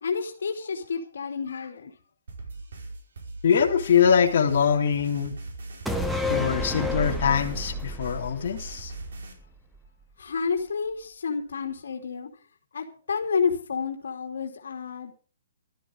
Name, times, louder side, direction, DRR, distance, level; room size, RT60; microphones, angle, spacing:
voice 1, 0.0-1.9 10.2-12.3 12.7-15.1, left 5 dB, 70° left, 3 dB, 2.9 m, -30 dB
sound 1, 2.3-9.3, right 3 dB, 65° right, 5.1 m, -40 dB
voice 2, 3.4-5.3 6.3-8.9, left 7 dB, 40° left, -1 dB, 3.3 m, -23 dB
sound 2, 5.9-9.4 9.8-9.9, left 1 dB, ahead, 0.9 m, -30 dB
15.0 x 13.0 x 5.1 m, 0.38 s
hypercardioid pair, 175°, 0 cm